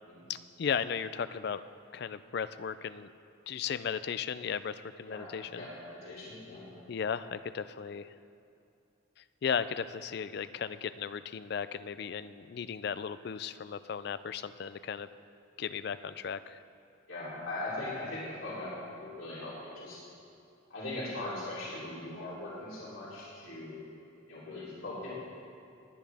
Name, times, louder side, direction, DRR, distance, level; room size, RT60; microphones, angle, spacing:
voice 1, 0.3-1.6 1.9-3.1 3.5-5.6 6.9-8.1 9.4-15.1 15.6-16.6, left 7 dB, 50° left, 13 dB, 0.3 m, -35 dB
voice 2, 5.5-6.6 17.1-20.0 20.7-23.8 24.3-25.1, left 2 dB, 85° left, -9 dB, 3.2 m, -40 dB
20.0 x 9.4 x 3.5 m, 2.6 s
head